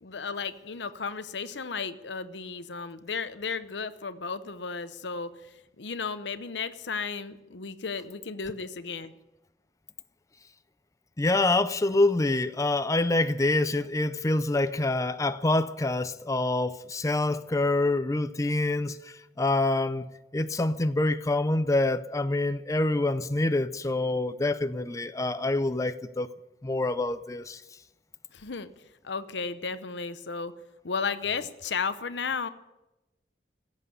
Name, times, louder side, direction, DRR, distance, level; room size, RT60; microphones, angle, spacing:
voice 1, 0.0-9.1 28.3-28.7 29.0-30.5 30.8-32.5, left 5 dB, 85° left, 0.9 m, -34 dB
voice 2, 11.2-20.1 20.3-26.3 26.6-27.6, left 2 dB, 20° left, 0.5 m, -26 dB
16.0 x 8.3 x 9.8 m
head